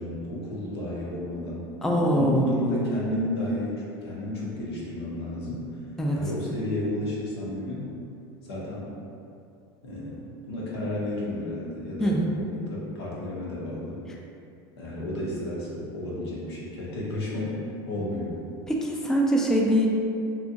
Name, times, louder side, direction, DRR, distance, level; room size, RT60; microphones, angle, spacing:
voice 1, 0.0-1.7 2.1-5.7 6.1-7.9 8.4-8.9 9.8-10.2 10.5-14.0 14.8-17.6 17.9-18.4, left 1 dB, 85° left, -6 dB, 0.8 m, -32 dB
voice 2, 1.8-2.4 6.0-6.2 12.0-12.3 18.7-19.9, equal, 5° left, -2 dB, 0.3 m, -23 dB
2.8 x 2.4 x 2.5 m, 2.6 s
hypercardioid pair, 95°, 13 cm